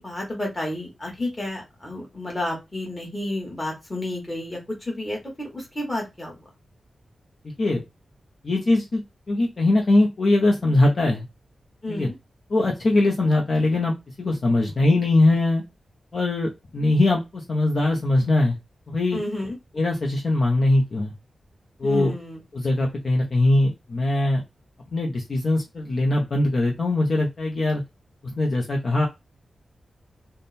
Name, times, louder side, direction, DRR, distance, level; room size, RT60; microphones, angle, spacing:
voice 1, 0.0-6.4 11.8-12.1 19.1-19.6 21.8-22.4, left 1 dB, 15° left, -1 dB, 1.5 m, -31 dB
voice 2, 8.4-9.0 9.3-11.2 11.9-12.1 12.5-15.6 16.1-18.6 18.9-19.2 19.8-21.1 21.8-22.1 22.5-24.4 24.9-27.8 28.4-29.1, left 2 dB, 45° left, 0 dB, 0.7 m, -21 dB
3.6 x 2.2 x 4.1 m, 0.23 s
wide cardioid pair, 160°, 0 cm